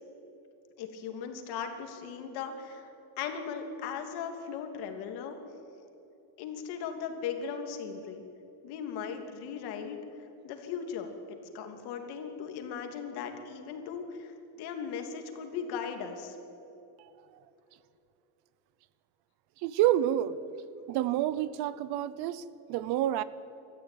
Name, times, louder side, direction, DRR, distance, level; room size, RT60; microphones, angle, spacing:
voice 1, 0.8-2.9 3.2-5.4 6.4-8.2 8.6-10.0 10.4-16.4, left 6 dB, 60° left, 5 dB, 2.9 m, -38 dB
voice 2, 19.6-20.5 20.9-23.2, right 12 dB, 60° right, 17 dB, 0.9 m, -28 dB
27.5 x 14.0 x 9.3 m, 2.9 s
cardioid pair, 170°, 43 cm